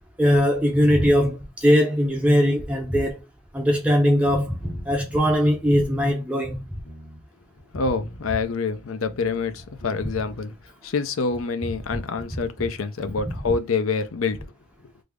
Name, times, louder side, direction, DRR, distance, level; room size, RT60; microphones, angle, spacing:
voice 1, 0.2-3.2 3.5-6.6, equal, 5° right, 0.4 m, -20 dB
sound 1, 4.6-6.2 6.5-7.3 7.6-7.7 7.9-8.4 8.7-10.7, equal, 55° left, 1.0 m, -45 dB
voice 2, 7.7-10.5 10.8-14.5, left 4 dB, 80° left, 0.5 m, -26 dB
3.4 x 2.0 x 3.5 m
head